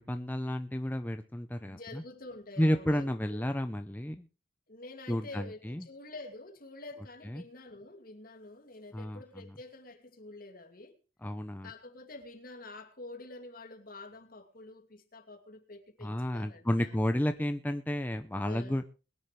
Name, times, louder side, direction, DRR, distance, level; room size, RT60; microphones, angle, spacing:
voice 1, 0.0-2.0 2.6-4.3 5.1-5.9 7.3-7.4 8.9-9.5 11.2-11.7 16.0-18.8, equal, 10° left, 0.6 m, -32 dB
voice 2, 1.7-3.4 4.7-11.0 11.6-17.0 18.4-18.8, left 2 dB, 50° left, 2.4 m, -48 dB
22.0 x 10.5 x 3.2 m
head